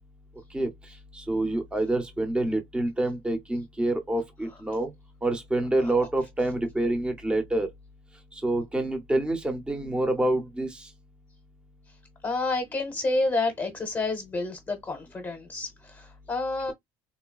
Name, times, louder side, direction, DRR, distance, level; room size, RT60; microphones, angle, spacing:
voice 1, 1.1-4.9 5.2-7.7 8.3-10.9, right 1 dB, 10° right, 0.7 m, -27 dB
voice 2, 12.2-16.7, left 2 dB, 20° left, 0.9 m, -29 dB
3.8 x 2.2 x 2.3 m
cardioid pair, 140°, 11 cm